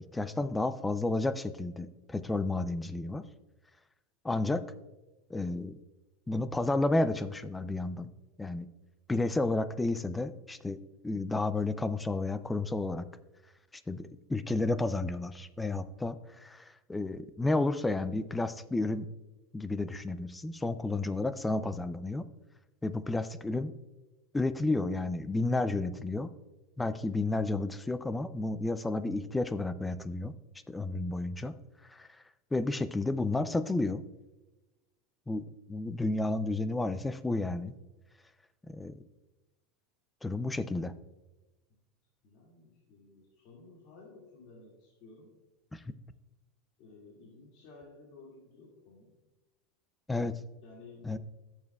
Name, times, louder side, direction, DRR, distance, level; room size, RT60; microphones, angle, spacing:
voice 1, 0.1-3.2 4.2-4.6 5.3-5.8 6.3-8.1 8.4-8.7 9.1-10.8 11.0-13.1 13.9-16.6 16.9-19.1 19.5-22.2 22.8-23.7 24.3-26.3 26.8-30.3 30.7-31.5 31.9-32.1 32.5-34.0 35.3-37.7 38.7-39.0 40.2-40.9 45.7-45.8 50.1-50.4 51.0-51.2, left 2 dB, 10° left, 13 dB, 0.4 m, -31 dB
voice 2, 42.2-45.3 46.8-49.2 50.6-51.2, left 3 dB, 50° left, -4 dB, 2.1 m, -54 dB
14.5 x 7.3 x 2.3 m, 1.1 s
supercardioid pair, 155°, 0 cm